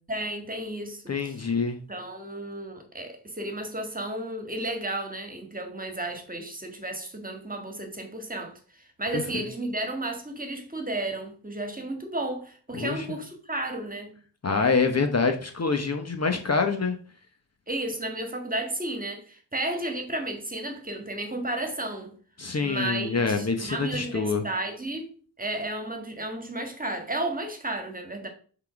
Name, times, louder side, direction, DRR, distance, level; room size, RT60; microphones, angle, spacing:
voice 1, 0.1-1.5 1.9-14.2 17.7-22.1 22.6-28.3, right 1 dB, 20° right, 1.7 m, -33 dB
voice 2, 1.1-1.8 9.1-9.2 12.8-13.0 14.4-17.0 22.4-24.4, left 4 dB, 35° left, 1.0 m, -26 dB
5.6 x 4.0 x 5.8 m
cardioid pair, 85°, 43 cm